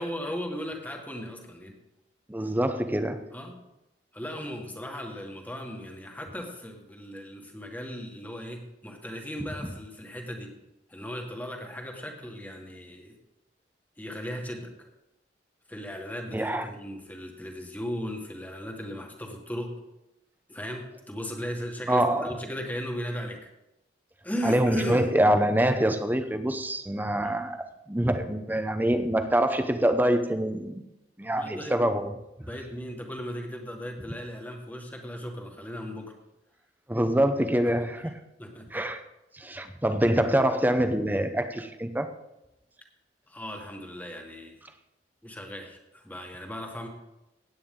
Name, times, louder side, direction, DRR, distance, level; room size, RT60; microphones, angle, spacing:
voice 1, 0.0-1.7 3.3-3.6 4.1-10.5 10.9-13.2 14.0-14.9 15.7-19.8 20.5-23.5 24.2-25.1 27.2-27.4 31.3-31.9 32.4-36.1 37.6-37.7 38.0-38.1 38.4-38.8 43.3-44.6 45.2-46.9, equal, 10° left, 2 dB, 1.6 m, -37 dB
voice 2, 2.3-3.3 16.3-16.7 21.9-22.3 24.4-30.8 31.2-32.1 36.9-38.1 38.7-39.0 39.3-42.1, right 1 dB, 10° right, 9 dB, 0.8 m, -25 dB
16.0 x 9.1 x 3.8 m, 0.91 s
head